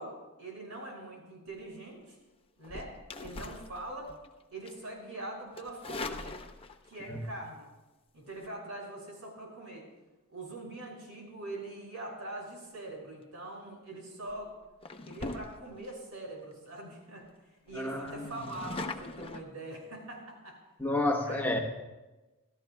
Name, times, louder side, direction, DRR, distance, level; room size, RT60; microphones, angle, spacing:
voice 1, 0.0-2.2 2.6-4.1 4.5-6.4 6.9-7.7 8.1-9.9 10.3-14.5 15.0-20.6 21.2-21.4, right 2 dB, 80° right, -1 dB, 5.9 m, -43 dB
sound 1, 2.6-4.3 4.7-4.9 5.5-7.0 8.2-8.5 13.5-13.8 14.3-14.4 14.8-15.9 16.4-16.5 16.8-16.9 17.2-17.3 17.7-19.4, left 3 dB, 25° left, 0.7 m, -41 dB
voice 2, 17.8-18.3 20.8-21.6, left 2 dB, 10° left, 2 dB, 1.1 m, -30 dB
28.0 x 13.5 x 2.3 m, 1.1 s
head